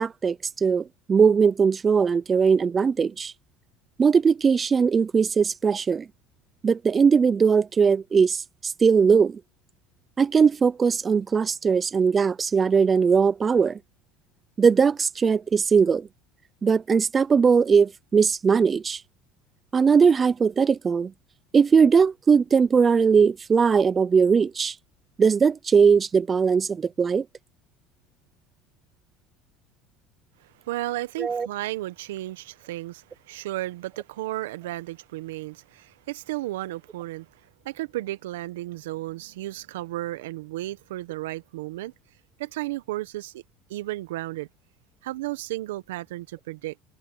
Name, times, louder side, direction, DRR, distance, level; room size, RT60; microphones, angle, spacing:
voice 1, 0.0-3.3 4.0-6.1 6.6-9.4 10.2-13.8 14.6-16.1 16.6-19.0 19.7-21.1 21.5-24.8 25.2-27.2 31.2-31.5, right 6 dB, 30° right, 0.6 m, -20 dB
voice 2, 30.4-41.9 42.4-43.4 43.7-44.5 45.0-46.7, right 17 dB, 80° right, 1.4 m, -33 dB
hypercardioid pair, 85°, 0 cm